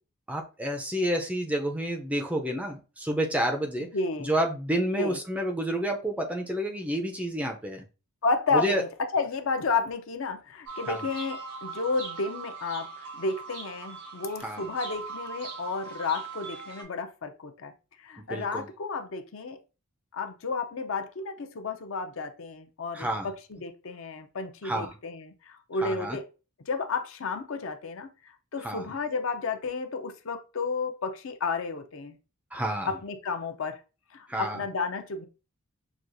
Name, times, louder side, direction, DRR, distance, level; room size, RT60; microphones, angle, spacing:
voice 1, 0.3-3.9 4.2-7.8 8.5-8.8 10.9-11.1 14.4-14.6 18.3-18.7 22.9-23.3 24.6-24.9 25.8-26.2 28.6-28.9 32.5-32.9 34.3-34.6, right 1 dB, 5° right, 3 dB, 0.4 m, -29 dB
voice 2, 3.9-4.3 5.0-5.2 8.2-8.9 9.1-17.7 18.0-19.6 20.1-26.2 26.7-28.1 28.5-32.2 32.9-33.8 34.1-35.3, left 4 dB, 60° left, 7 dB, 0.5 m, -32 dB
sound 1, 10.7-16.8, right 4 dB, 85° right, 1.6 m, -40 dB
6.0 x 2.3 x 2.5 m, 0.32 s
head